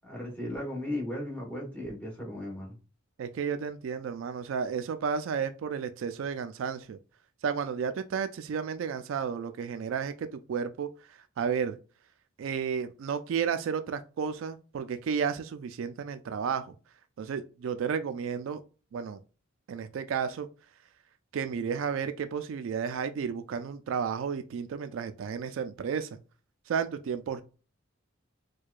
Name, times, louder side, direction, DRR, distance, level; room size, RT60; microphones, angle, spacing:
voice 1, 0.0-2.8, left 1 dB, 10° left, 1.3 m, -36 dB
voice 2, 3.2-7.0 7.4-11.8 12.4-16.8 17.2-18.6 18.9-19.2 19.7-20.5 21.3-26.2 26.7-27.4, right 6 dB, 70° right, 0.3 m, -32 dB
4.6 x 2.2 x 2.4 m
head